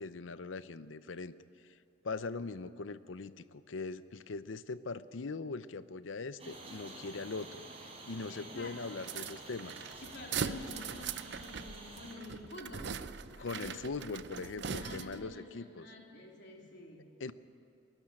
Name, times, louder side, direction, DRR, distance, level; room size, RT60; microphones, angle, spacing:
voice 1, 0.0-1.3 1.6-1.8 2.0-7.6 8.1-9.9 13.4-15.9 17.2-17.3, left 3 dB, 90° left, 14 dB, 0.7 m, -41 dB
sound 1, 6.4-12.2, right 2 dB, 35° right, 3.9 m, -49 dB
voice 2, 8.3-8.8 10.0-13.1 13.3-13.8 14.3-17.2, left 2 dB, 65° left, 0 dB, 3.0 m, -49 dB
sound 2, 9.0-15.3, right 6 dB, 65° right, 0.6 m, -41 dB
21.5 x 12.5 x 9.9 m, 2.6 s
head